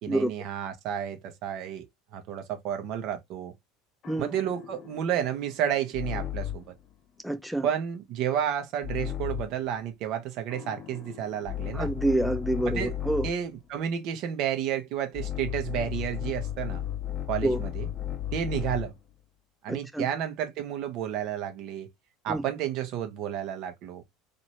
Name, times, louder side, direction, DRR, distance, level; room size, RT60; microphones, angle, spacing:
voice 1, 0.0-1.9 2.1-3.5 4.2-6.6 7.6-11.9 12.6-12.9 13.2-16.9 17.3-17.9 18.3-18.9 19.6-21.9 22.2-24.0, right 9 dB, 60° right, 0.8 m, -31 dB
sound 1, 4.0-6.8 8.8-9.6 10.5-13.5 15.1-19.0, left 11 dB, 45° left, 0.7 m, -35 dB
voice 2, 7.2-7.7 11.7-13.3 17.4-17.6 19.7-20.1 22.3-22.4, right 1 dB, ahead, 0.3 m, -27 dB
2.9 x 2.6 x 2.9 m
hypercardioid pair, 70°, 0 cm